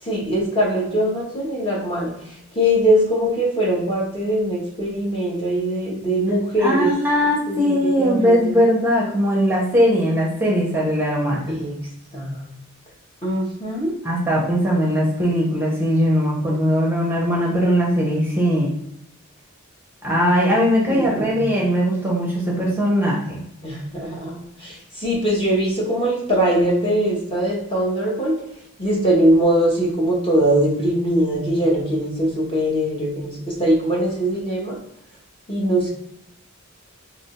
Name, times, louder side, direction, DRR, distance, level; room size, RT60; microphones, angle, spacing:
voice 1, 0.0-6.9 7.5-8.6 11.5-11.8 12.1-12.4 13.2-14.0 21.0-21.4 23.6-28.4 28.8-34.8 35.5-35.9, right 1 dB, 25° left, -3 dB, 1.0 m, -21 dB
voice 2, 6.6-11.5 14.0-18.7 20.0-23.4, equal, 10° right, -4 dB, 0.7 m, -20 dB
2.8 x 2.5 x 4.3 m, 0.79 s
head